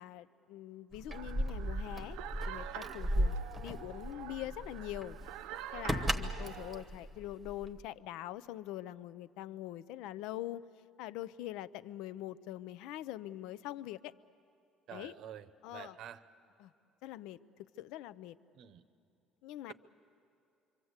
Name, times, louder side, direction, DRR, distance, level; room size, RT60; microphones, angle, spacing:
voice 1, 0.0-2.2 2.5-3.4 3.6-5.2 5.7-10.6 11.0-14.1 14.9-15.1 15.6-16.0 16.6-16.7 17.0-17.4 17.8-18.4 19.4-19.7, left 13 dB, 80° left, 16 dB, 0.5 m, -43 dB
Keys jangling, 0.9-7.9, equal, 5° right, 1.0 m, -36 dB
sound 1, 1.1-6.8, right 12 dB, 85° right, 0.6 m, -47 dB
voice 2, 14.9-15.5 15.7-16.2 18.6-18.8, right 10 dB, 50° right, 13 dB, 0.8 m, -48 dB
26.5 x 24.5 x 8.1 m, 2.6 s
cardioid pair, 180°, 0 cm